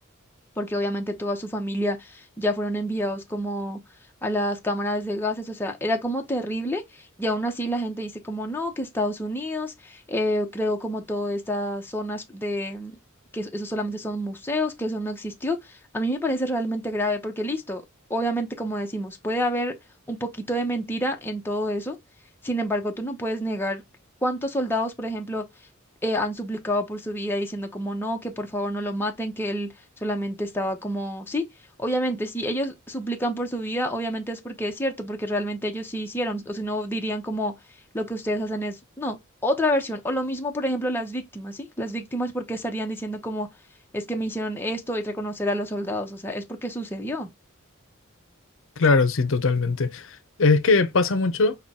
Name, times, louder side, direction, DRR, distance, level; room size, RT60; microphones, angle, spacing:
voice 1, 0.6-3.8 4.2-6.8 7.2-13.0 13.3-17.8 18.1-19.7 20.1-22.0 22.4-23.8 24.2-25.4 26.0-29.7 30.0-31.4 31.8-37.5 37.9-39.2 39.4-43.5 43.9-47.3, equal, 10° left, 0.8 m, -28 dB
voice 2, 48.8-51.6, left 3 dB, 65° left, 0.7 m, -21 dB
5.6 x 2.2 x 3.6 m
head